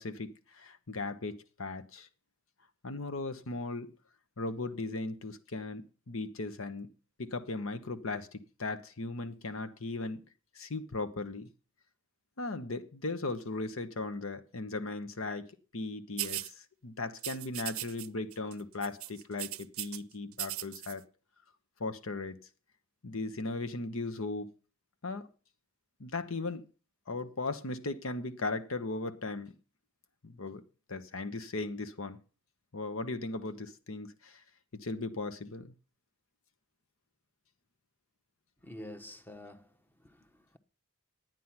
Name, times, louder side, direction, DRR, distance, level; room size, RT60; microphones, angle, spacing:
voice 1, 0.0-2.1 2.8-3.9 4.4-6.9 7.2-10.3 10.5-11.5 12.4-15.5 15.7-21.0 21.8-22.4 23.0-24.5 25.0-25.3 26.0-26.7 27.1-29.5 30.2-30.6 30.9-32.2 32.7-34.4 34.7-35.7, left 3 dB, 75° left, 1.1 m, -37 dB
sound 1, 16.2-16.5 17.2-18.1 18.3-18.5 18.8-20.0 20.3-20.9, right 16 dB, 85° right, 0.5 m, -38 dB
voice 2, 38.6-40.6, left 1 dB, 10° left, 0.9 m, -48 dB
11.5 x 9.3 x 5.9 m
head